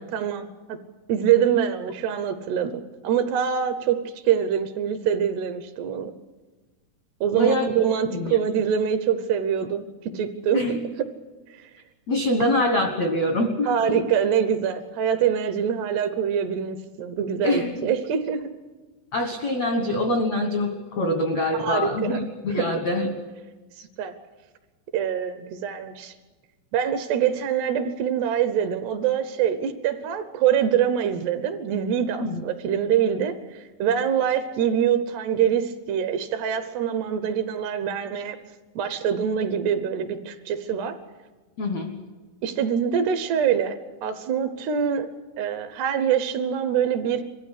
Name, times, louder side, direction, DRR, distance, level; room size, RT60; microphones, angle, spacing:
voice 1, 0.1-0.8 1.1-2.7 3.0-4.0 4.2-6.1 7.2-10.6 11.6-11.7 13.7-18.5 21.6-22.2 23.8-24.1 24.9-26.1 26.7-38.4 38.8-41.0 42.4-43.8 44.0-45.1 45.4-47.2, right 8 dB, 75° right, 10 dB, 2.7 m, -24 dB
voice 2, 7.4-7.7 8.1-8.4 10.5-10.9 12.1-14.0 17.4-17.9 19.1-23.1 32.2-32.4 41.6-42.0, left 1 dB, 80° left, 4 dB, 1.5 m, -24 dB
22.5 x 15.0 x 10.0 m, 1.3 s
omnidirectional pair, 5.4 m